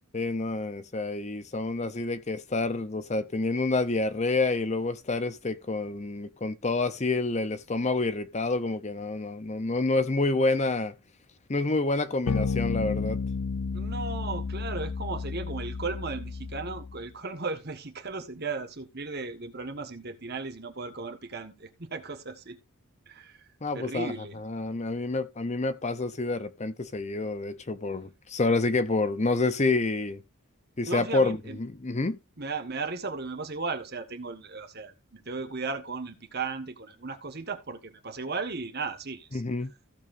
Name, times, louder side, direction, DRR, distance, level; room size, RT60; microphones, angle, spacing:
voice 1, 0.1-10.9 11.5-13.2 23.6-30.2 30.8-32.2 39.3-39.7, left 3 dB, 30° left, 0.6 m, -28 dB
sound 1, 12.3-17.0, left 5 dB, 80° left, 0.5 m, -32 dB
voice 2, 13.7-22.6 23.1-23.5 23.7-24.4 30.9-31.6 32.4-39.4, right 4 dB, 45° right, 1.5 m, -36 dB
15.0 x 7.1 x 2.6 m
head